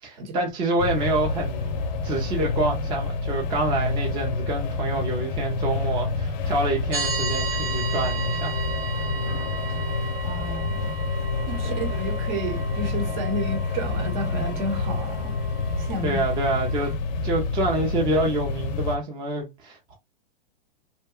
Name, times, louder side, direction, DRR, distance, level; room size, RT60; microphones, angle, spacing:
voice 1, 0.0-8.6 11.6-11.8 16.0-16.9 17.2-20.0, right 2 dB, 15° right, 0.5 m, -27 dB
sound 1, 0.8-19.0, left 3 dB, 50° left, 0.5 m, -28 dB
sound 2, 6.9-16.9, right 5 dB, 75° right, 0.8 m, -35 dB
voice 2, 10.2-10.9 11.5-15.3 15.8-16.2, equal, 50° right, 1.0 m, -31 dB
2.8 x 2.2 x 2.3 m
hypercardioid pair, 135°, 30 cm